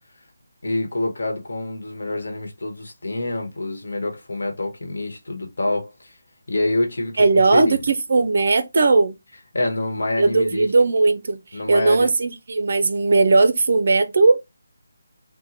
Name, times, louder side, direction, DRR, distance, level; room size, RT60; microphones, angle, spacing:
voice 1, 0.6-6.2 6.5-7.8 9.5-10.7 11.5-12.1, left 2 dB, 75° left, 1.0 m, -26 dB
voice 2, 7.2-9.1 10.2-11.4 11.7-14.4, right 3 dB, 55° right, 0.5 m, -18 dB
2.9 x 2.1 x 3.9 m
figure-of-eight pair, 165°, 0 cm